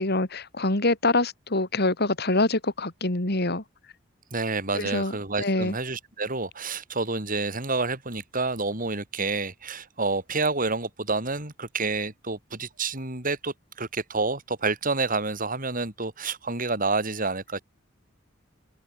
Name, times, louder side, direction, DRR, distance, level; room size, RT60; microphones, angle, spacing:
voice 1, 0.0-3.6 4.7-5.7, left 2 dB, 55° left, 3.3 m, -25 dB
voice 2, 4.3-17.6, right 3 dB, 45° right, 5.9 m, -29 dB
open air
head